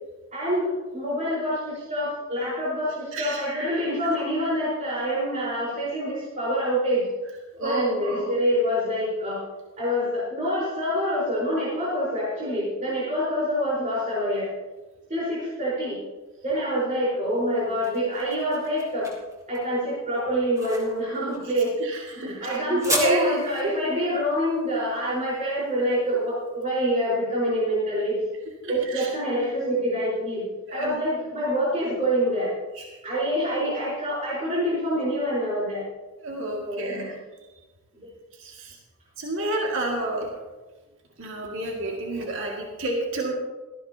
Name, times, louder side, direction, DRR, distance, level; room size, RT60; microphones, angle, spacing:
voice 1, 0.3-7.1 7.6-9.4 9.8-14.5 15.1-16.0 16.4-19.1 19.5-21.7 22.0-28.2 28.7-32.5 33.0-35.9 36.6-37.2 37.9-38.1, equal, 35° right, -7 dB, 4.5 m, -26 dB
voice 2, 7.6-8.0 21.8-22.5 23.0-23.2 28.6-29.1 30.7-31.0 32.8-32.9 36.2-37.1 38.4-38.8 39.2-40.3 41.2-43.3, right 2 dB, 65° right, -1 dB, 2.2 m, -30 dB
sound 1, 17.3-26.4, equal, 15° right, 3.6 m, -35 dB
18.5 x 14.5 x 2.9 m, 1.2 s
head